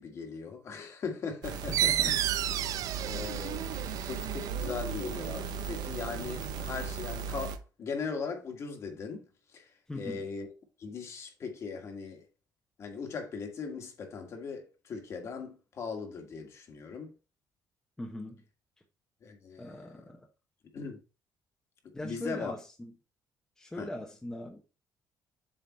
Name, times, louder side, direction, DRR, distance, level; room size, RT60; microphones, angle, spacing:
voice 1, 0.0-1.8 2.0-2.2 3.0-9.2 9.5-10.5 10.8-12.2 12.8-17.1 19.2-20.0 20.7-21.0 22.0-22.6 23.7-23.9, left 5 dB, 45° left, 1.7 m, -39 dB
sound 1, 1.4-7.6, right 6 dB, 75° right, 0.8 m, -37 dB
voice 2, 1.7-2.3 9.9-10.2 18.0-18.4 19.6-20.3 21.9-22.9 23.6-24.6, left 1 dB, 10° left, 0.9 m, -40 dB
sound 2, 1.7-7.0, right 12 dB, 55° right, 0.3 m, -33 dB
7.7 x 3.8 x 4.2 m
cardioid pair, 155°, 7 cm